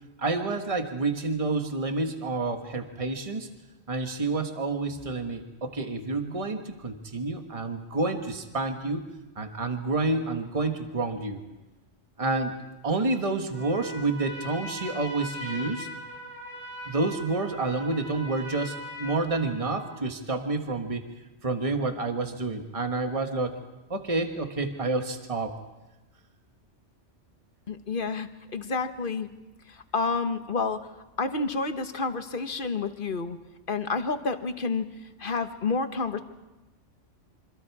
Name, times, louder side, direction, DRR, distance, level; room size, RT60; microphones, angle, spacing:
voice 1, 0.2-3.5 3.9-9.0 9.3-11.4 12.2-15.9 16.8-21.0 21.4-23.6 23.9-25.5, right 3 dB, 30° right, 5 dB, 1.6 m, -29 dB
Trumpet, 13.5-20.0, equal, 50° right, 8.2 m, -40 dB
voice 2, 27.7-29.3 29.7-30.9 31.2-33.4 33.7-34.9 35.2-36.2, left 4 dB, 45° left, 8 dB, 1.4 m, -29 dB
27.5 x 25.5 x 4.8 m, 1.0 s
omnidirectional pair, 1.2 m